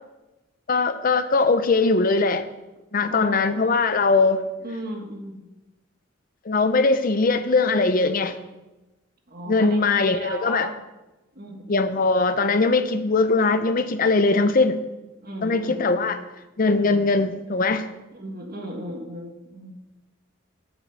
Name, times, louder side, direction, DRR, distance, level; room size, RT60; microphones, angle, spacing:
voice 1, 0.7-2.4 2.9-4.4 6.5-8.4 9.5-10.7 11.7-14.8 15.4-16.2 16.6-17.9, left 3 dB, 40° left, 10 dB, 0.5 m, -21 dB
voice 2, 3.1-3.8 4.6-5.4 9.3-10.8 11.3-12.2 15.2-16.2 18.1-19.7, equal, 45° right, 3 dB, 1.5 m, -36 dB
7.5 x 6.2 x 6.8 m, 1.0 s
head